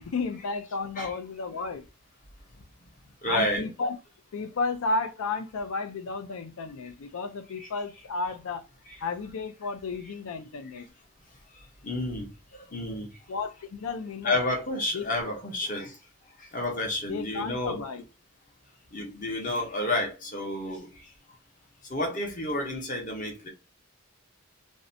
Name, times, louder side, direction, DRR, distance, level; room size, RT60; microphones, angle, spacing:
voice 1, 0.0-1.9 3.3-4.0 4.3-8.6 9.0-10.9 13.3-14.4 14.9-15.1 17.1-18.0, left 3 dB, 80° left, 0.5 m, -33 dB
voice 2, 3.2-3.7 7.6-7.7 11.8-13.1 14.2-15.9 16.5-17.8 18.9-20.9 21.9-23.5, left 1 dB, 35° left, 0.7 m, -30 dB
2.5 x 2.1 x 2.6 m
head